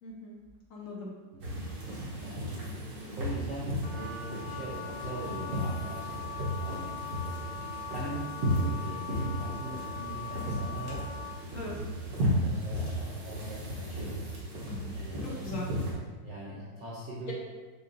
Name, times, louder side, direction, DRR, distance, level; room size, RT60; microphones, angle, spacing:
voice 1, 0.0-0.4 0.7-1.1 11.5-11.7 14.7-15.0 15.4-15.7, left 2 dB, 55° left, -4 dB, 1.1 m, -40 dB
voice 2, 1.3-1.7 2.2-2.7 3.2-7.4 7.9-11.1 12.2-14.2 14.9-15.4 16.2-17.3, right 1 dB, 70° right, -6 dB, 0.7 m, -42 dB
sound 1, 1.4-15.9, equal, 50° right, 1.2 m, -34 dB
Wind instrument woodwind instrument, 3.8-11.4, left 6 dB, 75° left, 0.7 m, -41 dB
6.3 x 2.6 x 2.5 m, 1.4 s
omnidirectional pair, 2.0 m